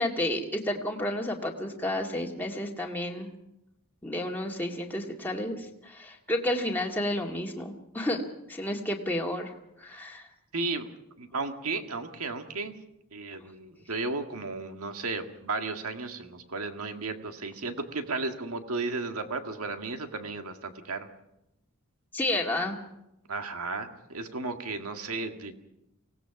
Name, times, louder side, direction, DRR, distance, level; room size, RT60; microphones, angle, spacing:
voice 1, 0.0-3.3 4.0-8.2 8.5-9.5 9.8-10.3 22.1-22.8, left 1 dB, 10° left, -1 dB, 1.9 m, -31 dB
voice 2, 10.5-10.9 11.2-12.7 13.1-21.1 23.3-25.5, right 3 dB, 70° right, 6 dB, 1.9 m, -34 dB
24.5 x 18.0 x 5.9 m, 0.85 s
head